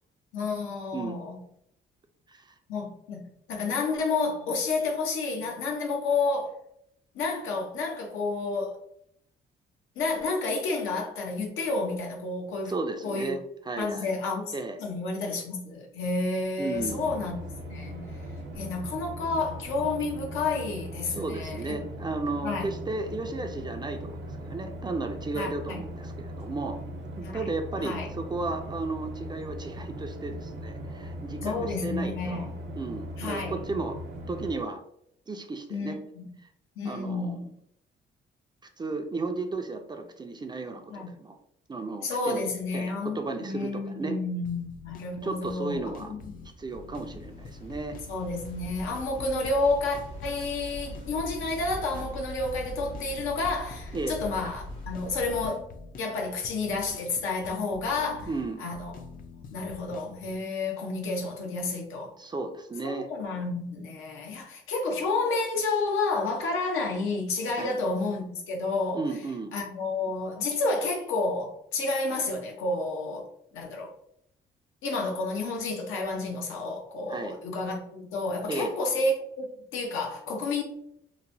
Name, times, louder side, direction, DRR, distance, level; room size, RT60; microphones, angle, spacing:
voice 1, 0.3-1.4 2.7-3.2 3.5-6.6 7.1-8.8 10.0-12.7 13.0-13.4 13.8-14.5 14.8-17.4 17.7-18.2 18.6-21.8 22.4-22.7 25.3-25.8 27.2-27.4 27.8-28.1 31.4-32.5 33.2-33.6 35.7-36.2 36.8-37.4 40.9-41.1 42.0-45.9 46.3-46.4 48.1-55.7 56.0-58.3 58.6-58.9 59.5-62.1 62.8-69.1 69.5-73.3 73.5-73.9 74.8-80.6, left 3 dB, 85° left, 0.8 m, -30 dB
voice 2, 12.7-14.2 14.5-14.8 16.6-17.1 21.1-26.8 27.2-32.5 32.8-34.0 34.3-34.8 35.3-36.0 36.8-37.5 38.8-41.4 41.7-44.2 45.2-46.1 46.4-48.0 53.9-54.2 58.3-58.6 62.2-63.1 67.6-67.8 68.9-69.5 77.1-77.4 78.5-78.7, right 3 dB, 20° right, 0.4 m, -34 dB
sound 1, 16.7-34.6, equal, 65° right, 0.7 m, -39 dB
sound 2, 44.4-60.4, left 4 dB, 45° left, 0.4 m, -47 dB
sound 3, 46.4-55.5, equal, 70° left, 1.2 m, -42 dB
3.0 x 2.1 x 2.6 m
cardioid pair, 90°, 20 cm